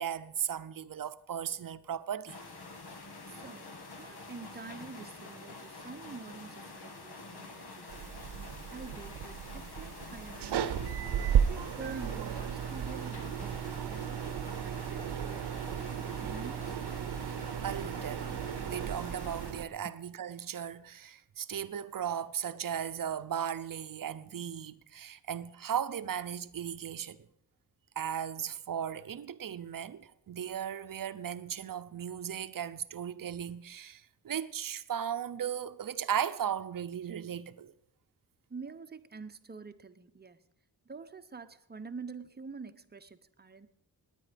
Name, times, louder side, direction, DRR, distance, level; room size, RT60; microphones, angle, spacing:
voice 1, 0.0-2.4 17.6-18.3 18.7-27.3 28.0-37.7, right 9 dB, 55° right, 0.7 m, -36 dB
sound 1, 2.3-19.5, left 3 dB, 75° left, 2.1 m, -47 dB
voice 2, 3.3-3.7 4.0-8.1 8.7-10.9 11.3-14.2 14.6-17.0 19.8-20.0 38.5-40.4 40.9-43.7, right 4 dB, 25° right, 0.8 m, -47 dB
sound 2, 7.9-19.6, right 8 dB, 90° right, 0.8 m, -34 dB
19.0 x 9.2 x 5.1 m
wide cardioid pair, 115°, 39 cm